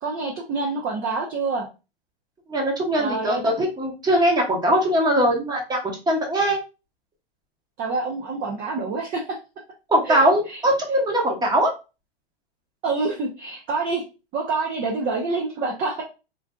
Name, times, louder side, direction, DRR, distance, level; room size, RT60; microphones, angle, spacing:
voice 1, 0.0-1.7 3.0-3.4 7.8-9.4 10.1-10.2 10.5-10.6 12.8-14.0 14.3-16.0, right 3 dB, 30° right, -1 dB, 0.7 m, -26 dB
voice 2, 2.5-5.8 6.1-6.6 9.9-11.7, right 1 dB, 15° right, 1 dB, 1.0 m, -21 dB
3.8 x 2.5 x 2.3 m, 0.30 s
hypercardioid pair, 125°, 29 cm